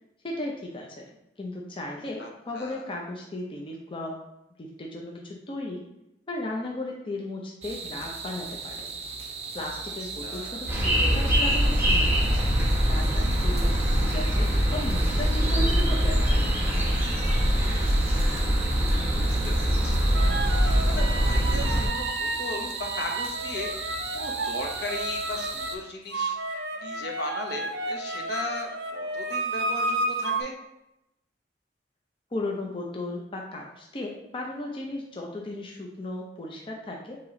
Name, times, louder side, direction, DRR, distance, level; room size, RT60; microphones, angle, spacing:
voice 1, 0.2-1.1 1.4-4.2 4.6-5.8 6.3-8.9 9.5-12.3 12.9-17.0 32.3-37.2, left 1 dB, 30° left, -1 dB, 0.5 m, -35 dB
voice 2, 2.2-2.9 9.8-10.7 17.7-18.1 19.2-20.0 20.9-30.5, left 2 dB, 65° left, 2 dB, 0.9 m, -37 dB
sound 1, 7.6-25.8, right 4 dB, 35° right, 0.5 m, -37 dB
sound 2, 10.7-21.9, equal, 15° right, 1.1 m, -23 dB
sound 3, 20.1-25.7 26.1-30.4, right 2 dB, 80° right, 0.5 m, -32 dB
4.8 x 2.9 x 3.7 m, 0.86 s
head